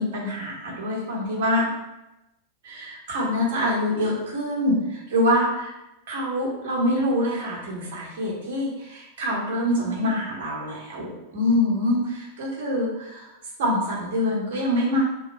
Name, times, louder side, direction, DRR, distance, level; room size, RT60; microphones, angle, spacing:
voice 1, 0.0-1.7 2.6-5.7 6.1-13.3 13.6-15.0, left 1 dB, 55° right, -3 dB, 1.3 m, -25 dB
3.1 x 2.8 x 4.4 m, 0.94 s
figure-of-eight pair, 90°, 0 cm